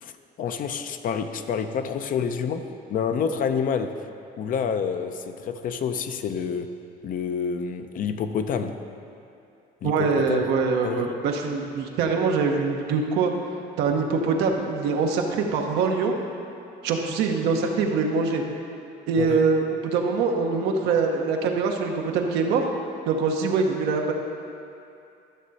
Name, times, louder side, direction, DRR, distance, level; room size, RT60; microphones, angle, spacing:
voice 1, 0.0-4.1 4.4-6.7 7.0-8.8 9.8-10.4 10.8-11.1 19.2-19.5, left 6 dB, 55° left, 8 dB, 0.6 m, -28 dB
voice 2, 9.8-13.3 13.8-16.1 16.8-18.4 19.1-22.6 23.1-24.1, right 4 dB, 90° right, 2 dB, 1.0 m, -23 dB
12.5 x 6.4 x 4.1 m, 2.6 s
cardioid pair, 110°, 17 cm